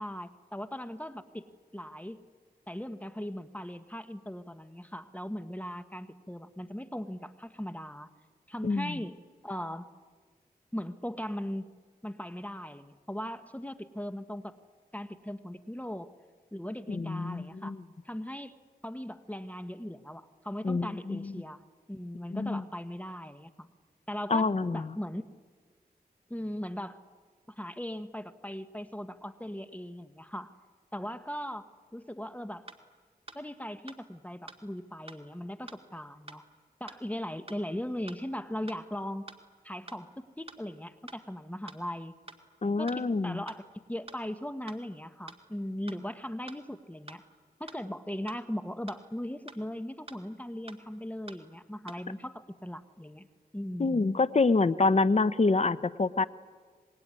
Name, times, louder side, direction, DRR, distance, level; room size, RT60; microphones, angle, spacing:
voice 1, 0.0-1.5 1.7-2.2 2.7-8.1 8.5-9.2 9.4-9.9 10.7-11.7 12.0-14.6 14.9-16.1 16.5-17.7 18.0-18.5 18.8-21.6 21.9-23.7 24.1-25.2 26.3-27.0 27.5-30.5 30.9-32.7 33.3-36.4 36.8-39.3 39.6-42.2 42.8-43.6 43.9-47.2 47.6-53.3 53.5-54.0, equal, 10° left, 10 dB, 1.2 m, -39 dB
voice 2, 8.6-9.0 16.9-17.8 20.6-21.3 22.3-22.6 24.3-25.0 42.6-43.4 53.8-56.3, left 3 dB, 45° left, 14 dB, 1.0 m, -27 dB
sound 1, 32.7-32.8 33.3-33.4 33.9-34.0 34.5-34.6 35.1-35.2 35.7-35.8 36.3-36.4 36.9-37.0 37.5-37.6 38.1-38.2 38.7-38.8 39.3-39.4 39.9-40.0 40.5-40.6 41.1-41.2 41.7-41.8 42.3-42.4 42.9-43.0 43.5-43.6 44.1-44.2 44.7-44.8 45.3-45.4 45.9-46.0 46.5-46.6 47.1-47.2 47.7-47.8 48.3-48.4 48.9-49.0 49.5-49.6 50.1-50.2 50.7-50.8 51.3-51.4 51.9-52.0, right 3 dB, 40° right, 2.6 m, -47 dB
25.5 x 21.5 x 9.7 m, 1.5 s
cardioid pair, 55°, 15 cm